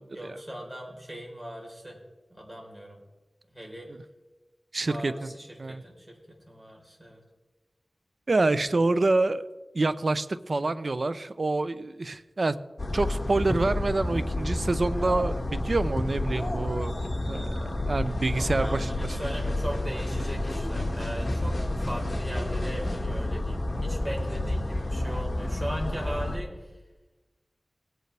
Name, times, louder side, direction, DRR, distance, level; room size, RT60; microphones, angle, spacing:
voice 1, 0.1-2.0 2.3-3.0 3.5-3.9 4.8-7.2 8.6-8.8 14.9-15.1 18.2-26.8, equal, 20° right, -1 dB, 4.0 m, -39 dB
voice 2, 4.7-5.3 5.6-5.8 8.3-9.5 9.7-12.6 12.9-16.9 17.3-18.9, right 2 dB, 60° right, 13 dB, 0.6 m, -27 dB
sound 1, 12.8-26.4, left 1 dB, 40° left, 1.9 m, -30 dB
18.5 x 9.2 x 3.4 m, 1.2 s
wide cardioid pair, 60°, 0 cm